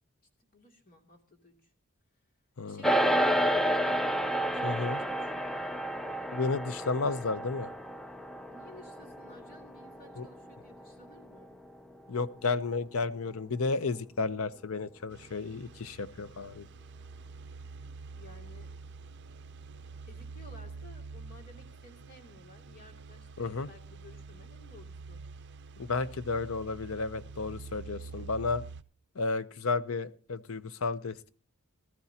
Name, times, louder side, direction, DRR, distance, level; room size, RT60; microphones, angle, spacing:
voice 1, 0.5-1.7 2.7-5.8 8.5-11.5 18.2-18.7 20.1-25.2, left 1 dB, 45° left, 2 dB, 2.7 m, -55 dB
sound 1, 2.8-12.3, equal, ahead, 0.5 m, -31 dB
voice 2, 4.6-5.0 6.3-7.7 10.2-10.3 12.1-16.7 23.4-23.7 25.8-28.6 29.2-31.2, left 4 dB, 70° left, 15 dB, 0.7 m, -32 dB
sound 2, 15.1-28.8, right 4 dB, 55° right, 0.6 m, -47 dB
18.5 x 13.5 x 2.8 m, 0.40 s
head